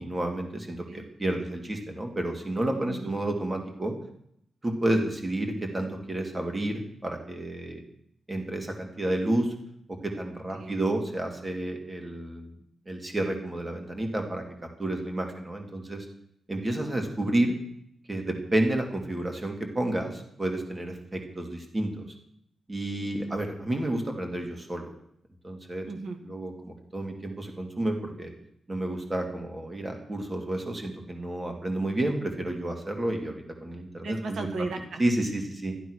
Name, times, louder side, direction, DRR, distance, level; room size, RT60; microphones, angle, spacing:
voice 1, 0.0-3.9 4.6-7.8 8.3-9.5 9.9-12.5 12.9-14.4 14.8-16.1 16.5-17.5 18.1-22.1 22.7-24.9 25.4-25.9 26.3-28.3 28.7-33.4 33.6-34.5 35.0-35.7, right 1 dB, 20° right, 3 dB, 2.6 m, -30 dB
voice 2, 2.8-3.2 10.3-10.9 25.8-26.2 34.0-35.0, right 3 dB, 75° right, 5 dB, 1.8 m, -37 dB
14.0 x 12.0 x 6.4 m, 0.72 s
wide cardioid pair, 155°, 0 cm